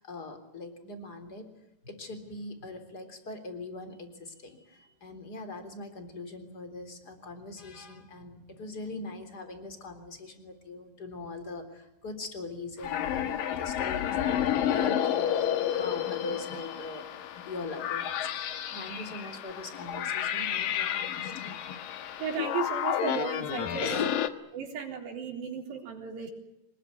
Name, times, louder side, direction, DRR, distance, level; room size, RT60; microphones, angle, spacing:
voice 1, 0.0-1.5 1.8-21.5 23.8-24.2, left 3 dB, 25° left, 8 dB, 3.7 m, -41 dB
sound 1, 12.8-24.3, left 10 dB, 65° left, 2.8 m, -31 dB
voice 2, 22.2-24.1 24.5-26.3, right 7 dB, 90° right, 3 dB, 6.0 m, -35 dB
25.0 x 21.0 x 9.6 m, 0.83 s
omnidirectional pair, 4.8 m